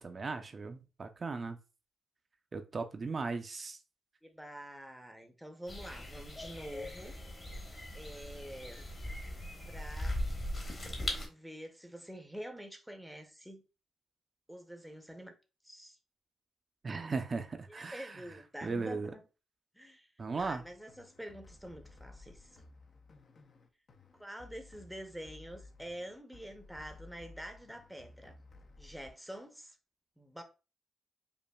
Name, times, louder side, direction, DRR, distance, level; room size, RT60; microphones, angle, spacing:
voice 1, 0.0-1.6 2.5-3.8 16.8-18.2 18.6-19.1 20.2-20.6, right 4 dB, 35° right, 0.4 m, -37 dB
voice 2, 4.2-7.1 7.9-8.9 9.7-10.2 11.3-13.6 14.5-15.3 15.6-16.0 17.7-19.2 19.7-20.1 20.4-22.6 24.2-28.3 28.8-29.8 30.2-30.4, equal, ahead, 0.6 m, -47 dB
sound 1, 5.7-11.3, left 1 dB, 30° left, 1.1 m, -39 dB
sound 2, 20.4-29.1, left 2 dB, 50° left, 0.5 m, -56 dB
5.0 x 2.4 x 2.2 m
cardioid pair, 110°, 0 cm